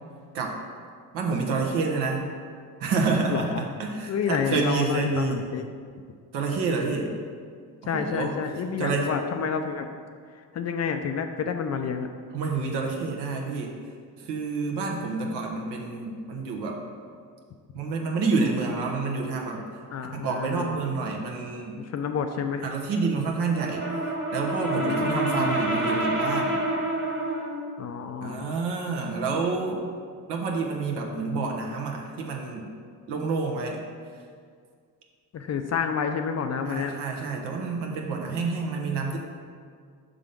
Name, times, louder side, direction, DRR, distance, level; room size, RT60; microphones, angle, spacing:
voice 1, 1.1-2.3 2.8-5.4 6.3-7.1 7.9-8.3 8.8-9.1 12.3-13.7 14.2-16.8 17.7-19.6 20.1-21.8 22.6-23.8 24.3-26.6 28.2-29.8 30.3-32.7 33.1-33.8 36.6-39.2, right 4 dB, 65° right, 1 dB, 1.1 m, -28 dB
voice 2, 3.3-3.6 4.1-5.6 7.9-9.9 10.5-12.1 19.9-20.8 21.8-22.7 24.7-25.6 27.8-28.4 35.3-36.9, left 6 dB, 40° left, 6 dB, 0.5 m, -29 dB
Brass instrument, 23.5-27.6, right 2 dB, 25° right, 1.4 m, -27 dB
5.7 x 3.7 x 5.1 m, 2.1 s
supercardioid pair, 65°, 43 cm